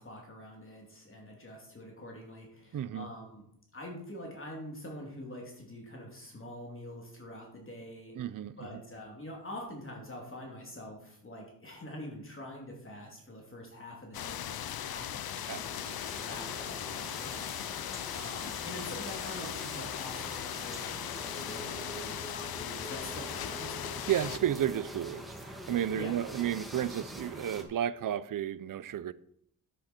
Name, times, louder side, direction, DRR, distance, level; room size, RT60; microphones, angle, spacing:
voice 1, 0.0-3.4 3.7-8.1 8.6-17.8 18.1-23.9 25.9-26.1, left 1 dB, 35° left, 2.8 m, -45 dB
voice 2, 2.7-3.1 8.2-8.8 15.5-15.9 24.1-29.1, right 10 dB, 65° right, 0.6 m, -33 dB
sound 1, 14.1-24.4, left 11 dB, 85° left, 0.6 m, -38 dB
sound 2, 15.1-27.6, right 1 dB, ahead, 1.8 m, -45 dB
10.0 x 8.3 x 4.4 m
wide cardioid pair, 85°, 36 cm